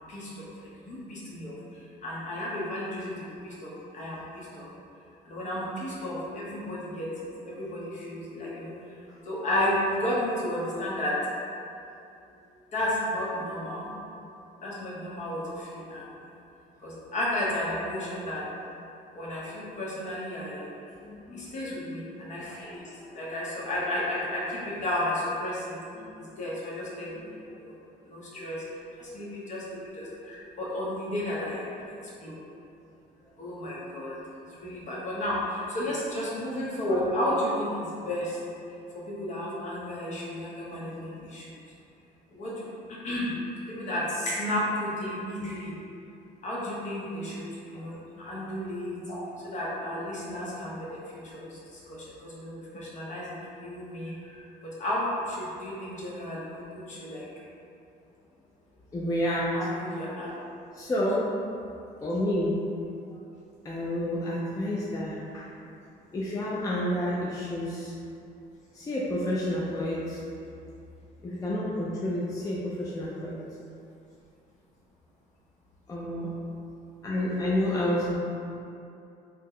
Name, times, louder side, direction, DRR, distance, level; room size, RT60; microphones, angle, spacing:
voice 1, 0.1-0.4 0.8-4.7 5.2-7.1 7.5-8.7 9.2-11.2 12.7-13.9 14.6-16.1 16.8-18.5 19.1-20.7 21.3-25.8 26.2-27.2 27.6-27.8 28.1-28.6 29.0-29.6 29.9-32.4 33.4-34.2 34.5-38.4 38.9-41.5 42.3-43.3 43.7-45.7 46.4-51.6 51.9-54.1 54.6-57.3 59.5-60.3, left 1 dB, 45° left, -6 dB, 0.8 m, -33 dB
voice 2, 21.0-21.5 23.0-23.1 26.0-26.1 27.1-27.6 34.2-34.3 47.7-47.8 54.1-54.4 58.9-59.5 60.7-61.3 62.0-62.6 63.6-65.5 66.1-67.9 68.7-70.2 71.2-73.4 75.9-76.3 77.0-78.1, left 1 dB, 20° left, -6 dB, 0.4 m, -30 dB
2.8 x 2.1 x 3.6 m, 2.6 s
cardioid pair, 110°, 17 cm